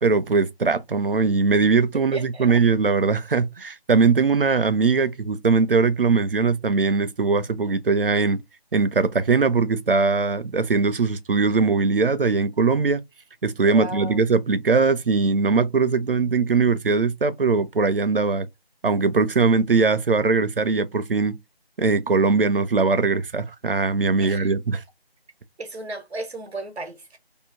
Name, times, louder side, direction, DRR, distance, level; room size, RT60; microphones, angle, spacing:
voice 1, 0.0-8.4 8.7-13.0 13.4-18.5 18.8-21.4 21.8-24.8, right 4 dB, 60° right, 0.5 m, -21 dB
voice 2, 2.1-2.5 13.6-14.2 24.2-24.5 25.6-27.2, right 2 dB, 85° right, 0.9 m, -34 dB
2.7 x 2.0 x 2.8 m
figure-of-eight pair, 180°, 31 cm